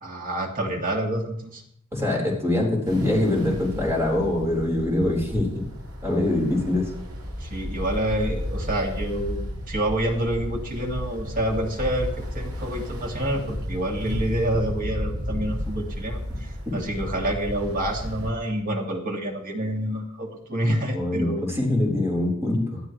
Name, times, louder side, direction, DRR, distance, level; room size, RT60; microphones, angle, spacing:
voice 1, 0.0-1.6 7.4-12.1 12.3-21.4, right 1 dB, 40° right, 1 dB, 2.2 m, -28 dB
voice 2, 1.9-5.6 6.0-6.9 20.9-22.8, left 1 dB, 10° right, -2 dB, 4.4 m, -24 dB
Ocean, 2.8-18.3, equal, 80° right, 6.0 m, -33 dB
20.0 x 12.5 x 3.2 m, 0.71 s
head